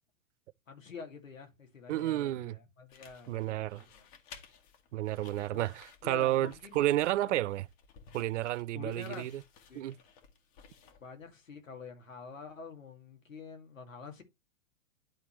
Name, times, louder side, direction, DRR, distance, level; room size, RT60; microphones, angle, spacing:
voice 1, 0.7-4.1 5.5-5.7 6.0-6.8 7.2-7.4 8.7-9.3 9.7-9.8 11.0-14.2, left 5 dB, 80° left, 2.2 m, -47 dB
voice 2, 1.9-2.6 3.3-3.8 4.9-7.7 8.1-9.3 9.8-9.9, right 14 dB, 65° right, 0.5 m, -31 dB
sound 1, 2.9-11.3, left 6 dB, 40° left, 1.7 m, -57 dB
11.5 x 4.2 x 3.1 m
hypercardioid pair, 110°, 39 cm